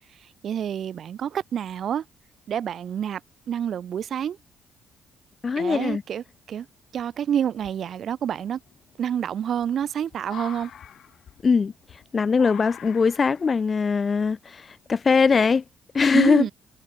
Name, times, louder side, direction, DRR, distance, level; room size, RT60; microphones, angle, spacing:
voice 1, 0.4-2.0 2.5-3.2 3.5-4.4 5.6-6.7 6.9-8.6 9.0-10.7 16.1-16.5, right 9 dB, 60° right, 0.8 m, -27 dB
voice 2, 5.4-6.0 11.4-15.6 15.9-16.5, left 5 dB, 35° left, 0.3 m, -21 dB
sound 1, 5.7-6.3 6.9-7.0 7.5-15.6, left 9 dB, 65° left, 3.1 m, -46 dB
cardioid pair, 90°, 0 cm